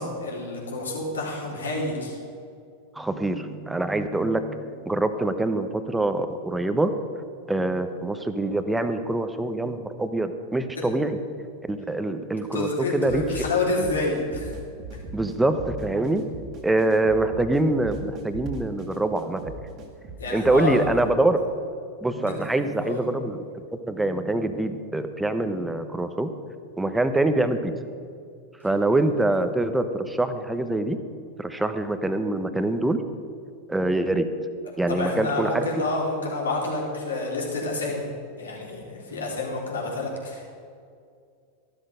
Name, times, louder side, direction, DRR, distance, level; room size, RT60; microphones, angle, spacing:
voice 1, 0.0-2.2 12.5-14.5 20.2-20.8 22.2-22.3 22.8-23.0 34.9-38.1 38.4-40.5, left 2 dB, 75° left, -2 dB, 3.6 m, -28 dB
voice 2, 2.9-6.9 7.5-11.2 11.7-13.5 15.1-19.5 20.3-21.4 22.0-26.3 26.8-27.7 28.6-31.0 31.4-33.0 33.7-34.3 34.8-35.6 39.1-39.3, right 2 dB, 5° right, 9 dB, 1.0 m, -25 dB
sound 1, 13.0-21.0, right 2 dB, 40° right, 2.1 m, -39 dB
14.5 x 12.0 x 5.2 m, 2.3 s
figure-of-eight pair, 90°, 0 cm